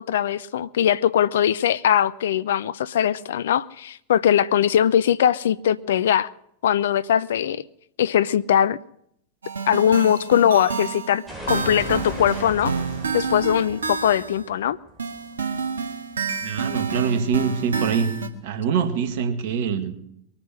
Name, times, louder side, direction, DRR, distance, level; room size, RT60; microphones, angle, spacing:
voice 1, 0.0-6.3 6.6-7.6 8.0-8.8 9.7-12.7 13.1-14.8, left 9 dB, 60° left, 16 dB, 0.5 m, -21 dB
sound 1, 9.4-14.4 15.0-18.3, right 5 dB, 70° right, 1.8 m, -29 dB
sound 2, 11.3-16.0, equal, 5° right, 6.6 m, -38 dB
voice 2, 16.4-18.1 18.4-20.0, right 7 dB, 50° right, 8 dB, 2.2 m, -24 dB
22.5 x 9.7 x 6.3 m, 0.73 s
figure-of-eight pair, 90°, 0 cm